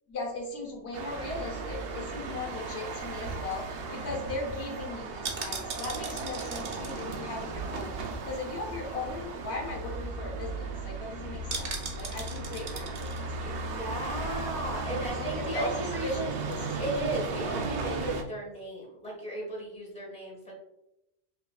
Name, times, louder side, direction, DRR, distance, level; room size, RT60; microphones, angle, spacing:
voice 1, 0.1-13.7 14.9-15.7 16.0-16.6, left 2 dB, 75° left, 0 dB, 1.2 m, -38 dB
sound 1, 0.9-18.2, right 3 dB, 65° right, 0.7 m, -36 dB
voice 2, 2.0-2.6 3.8-4.2 13.4-16.4 16.8-20.5, right 1 dB, 5° left, -5 dB, 1.4 m, -37 dB
sound 2, 3.1-8.4 8.7-8.8 9.1-9.3 9.7-9.8 10.1-10.4 11.5-13.2 13.6-13.7, right 4 dB, 90° right, 1.1 m, -39 dB
5.4 x 3.0 x 2.3 m, 0.85 s
omnidirectional pair, 1.1 m